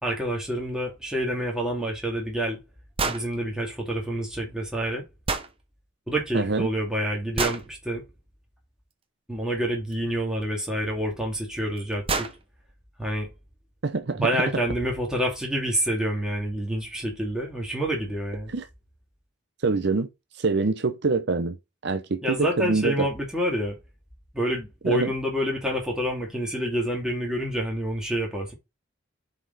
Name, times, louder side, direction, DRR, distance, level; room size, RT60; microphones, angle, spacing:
voice 1, 0.0-2.6 3.0-5.1 6.1-8.0 9.3-12.3 13.0-13.3 14.1-18.5 22.2-23.8 24.3-28.5, right 1 dB, 5° right, 2.4 m, -28 dB
sound 1, 3.0-3.3 5.3-5.5 7.4-7.7 9.9-10.0 11.3-11.4 11.8-11.9 12.1-12.4, right 4 dB, 30° right, 0.8 m, -27 dB
voice 2, 6.3-6.7 13.8-14.3 18.5-18.7 19.6-20.1 20.4-21.6 21.8-23.1 24.8-25.1, right 3 dB, 60° right, 0.7 m, -25 dB
7.7 x 4.4 x 4.0 m
head